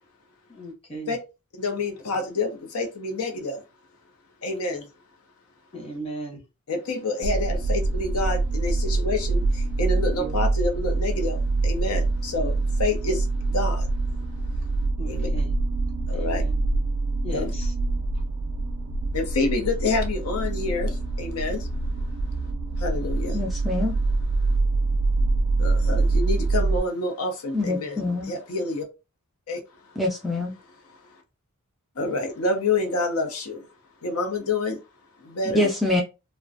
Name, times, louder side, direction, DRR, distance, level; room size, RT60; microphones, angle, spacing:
voice 1, 0.5-1.1 5.7-6.4 10.2-10.4 15.0-15.5 16.1-16.5 17.2-17.7, right 2 dB, 25° left, 0.8 m, -37 dB
voice 2, 1.5-3.6 4.4-4.9 6.7-13.9 15.1-15.3 16.1-16.4 17.3-17.5 19.1-21.7 22.8-23.4 25.6-28.9 29.5-29.6 29.9-30.0 30.9-31.2 32.0-33.7 34.0-34.8 35.2-35.7, left 2 dB, 70° left, 0.6 m, -28 dB
sound 1, 7.2-26.8, right 2 dB, 80° right, 0.4 m, -25 dB
voice 3, 23.3-23.9 27.5-28.3 30.0-30.5 35.5-36.0, left 2 dB, ahead, 0.3 m, -25 dB
2.4 x 2.1 x 2.5 m
head